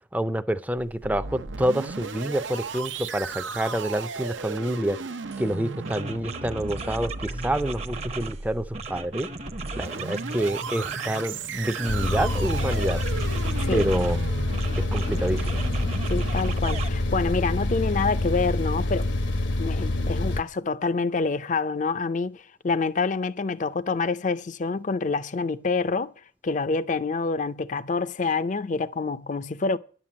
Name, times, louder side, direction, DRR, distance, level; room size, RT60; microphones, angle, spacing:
voice 1, 0.1-5.0 5.4-9.3 9.8-13.0 13.7-14.2 14.9-15.5, right 1 dB, 10° right, 0.5 m, -27 dB
sound 1, 0.8-17.6, right 4 dB, 85° right, 0.8 m, -36 dB
sound 2, 5.3-5.5 5.8-8.4 8.7-11.3 11.6-14.2 14.5-16.9, right 3 dB, 35° right, 0.8 m, -36 dB
sound 3, 11.9-20.4, left 2 dB, 80° left, 1.0 m, -26 dB
voice 2, 13.6-13.9 16.1-19.1 19.6-26.1 26.4-29.8, left 4 dB, 40° left, 0.5 m, -27 dB
10.5 x 7.5 x 8.5 m
head